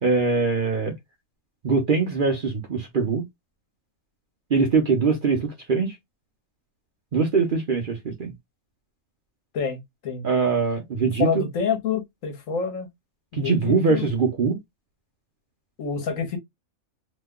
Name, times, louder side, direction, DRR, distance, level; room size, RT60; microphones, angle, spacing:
voice 1, 0.0-0.9 1.6-3.2 4.5-5.9 7.1-8.3 10.2-11.4 13.3-14.6, right 4 dB, 45° right, 0.7 m, -22 dB
voice 2, 9.5-10.3 11.2-12.9 13.3-14.0 15.8-16.4, left 6 dB, 65° left, 1.3 m, -27 dB
2.9 x 2.1 x 3.5 m
omnidirectional pair, 1.5 m